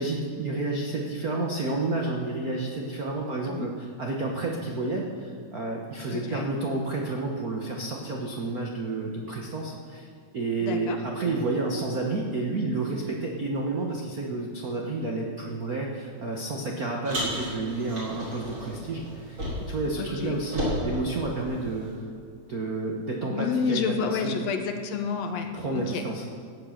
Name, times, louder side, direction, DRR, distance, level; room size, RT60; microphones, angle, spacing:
voice 1, 0.0-10.1 10.3-21.9 22.5-24.4 25.5-26.3, right 2 dB, 80° right, 0 dB, 0.8 m, -30 dB
voice 2, 6.1-6.5 10.6-11.0 20.0-20.4 23.2-26.0, left 5 dB, 70° left, 6 dB, 1.8 m, -30 dB
Car, 17.1-19.9 20.1-21.9, equal, 50° right, 5.2 m, -33 dB
16.5 x 8.5 x 6.4 m, 2.3 s
omnidirectional pair, 3.6 m